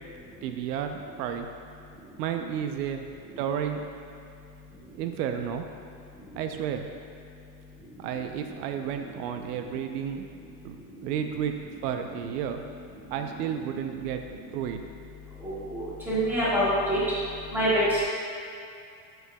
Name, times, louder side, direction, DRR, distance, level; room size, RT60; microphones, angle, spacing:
voice 1, 0.4-1.5 2.2-3.1 3.4-3.8 5.0-5.6 6.4-6.8 8.0-10.3 10.6-10.8 11.0-11.5 11.8-12.6 13.1-14.2 14.5-14.8, right 9 dB, 85° right, 6 dB, 0.7 m, -31 dB
voice 2, 15.4-17.0 17.5-18.0, equal, 5° right, -11 dB, 1.7 m, -25 dB
9.8 x 7.9 x 2.2 m, 2.5 s
supercardioid pair, 175°, 47 cm